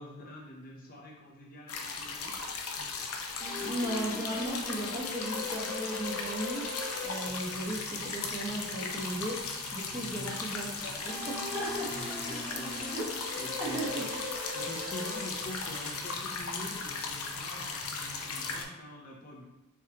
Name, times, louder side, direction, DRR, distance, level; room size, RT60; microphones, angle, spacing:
voice 1, 0.0-2.4 2.8-3.1 10.0-10.4 11.7-12.9 13.4-14.1 14.5-19.5, left 1 dB, 40° left, -1 dB, 0.6 m, -45 dB
sound 1, 1.7-18.6, left 4 dB, 80° left, 0.6 m, -37 dB
sound 2, 3.4-18.8, left 2 dB, 10° left, 1.1 m, -42 dB
voice 2, 3.5-6.7 7.0-9.4 9.7-11.9 12.9-13.1 13.6-14.0, right 1 dB, 15° right, -4 dB, 0.8 m, -36 dB
sound 3, 6.6-16.2, right 4 dB, 60° right, 0.7 m, -49 dB
4.4 x 3.5 x 2.8 m, 1.0 s
head